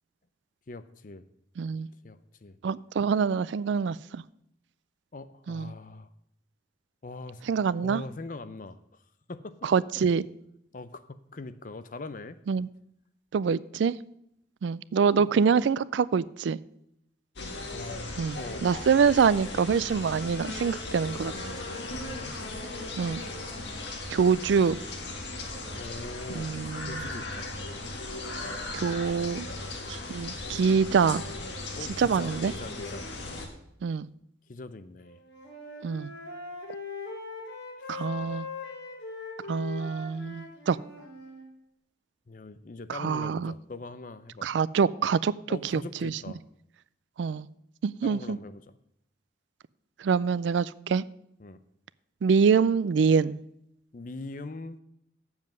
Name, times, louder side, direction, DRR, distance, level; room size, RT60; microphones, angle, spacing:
voice 1, 0.7-1.2 2.0-2.6 5.1-6.1 7.0-7.4 7.8-9.0 9.3-9.7 10.7-12.4 15.2-15.3 17.7-18.7 21.9-22.4 25.8-26.5 26.8-27.5 31.7-33.1 34.5-35.2 37.8-37.9 42.3-44.5 45.5-46.4 48.0-48.6 51.4-51.6 53.9-54.8, left 3 dB, 45° left, 0.5 m, -42 dB
voice 2, 1.6-1.9 2.6-4.2 5.5-5.7 7.5-8.0 9.6-10.2 12.5-12.7 13.3-14.0 14.6-16.6 18.2-21.3 23.0-23.2 24.1-24.8 26.3-27.0 28.7-29.5 29.9-31.2 32.0-32.5 33.8-34.1 35.8-36.1 37.9-38.5 39.5-40.8 42.9-43.5 44.4-45.3 45.7-46.2 47.2-47.5 47.8-48.4 50.0-51.0 52.2-53.4, right 6 dB, 75° right, 0.3 m, -25 dB
sound 1, 17.4-33.5, left 2 dB, 70° left, 1.7 m, -37 dB
Wind instrument woodwind instrument, 35.0-41.5, left 4 dB, 85° left, 4.6 m, -41 dB
7.5 x 7.2 x 7.6 m
head